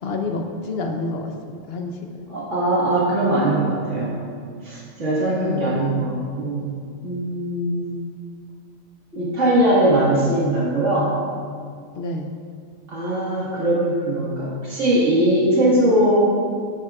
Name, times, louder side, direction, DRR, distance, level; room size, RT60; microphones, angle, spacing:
voice 1, 0.0-2.0 5.4-6.1 12.0-12.3, left 3 dB, 55° left, 3 dB, 1.0 m, -28 dB
voice 2, 2.3-4.2 4.6-6.7 7.0-8.2 9.1-11.1 12.9-16.2, right 1 dB, 70° right, -8 dB, 2.2 m, -20 dB
10.0 x 8.9 x 2.4 m, 2.1 s
omnidirectional pair, 1.3 m